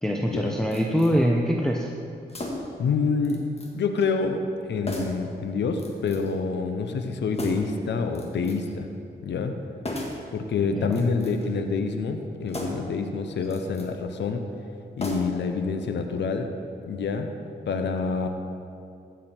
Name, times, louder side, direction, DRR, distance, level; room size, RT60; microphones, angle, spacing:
voice 1, 0.0-1.9 10.7-11.0, equal, 5° left, 1 dB, 0.8 m, -24 dB
sound 1, 0.7-1.1 2.3-2.8 3.2-3.7 4.0-4.1 4.9-5.3 5.8-6.3 7.3-7.8 8.1-8.7 9.8-10.3 10.8-11.5 12.5-12.9 13.4-13.9 15.0-15.5 15.8-15.9, left 1 dB, 35° left, 1.9 m, -35 dB
voice 2, 2.8-8.9 9.2-9.5 10.3-14.4 15.0-16.5 16.8-17.3 17.7-18.3, left 4 dB, 80° left, 6 dB, 0.8 m, -27 dB
14.5 x 7.3 x 4.5 m, 2.5 s
cardioid pair, 65°, 18 cm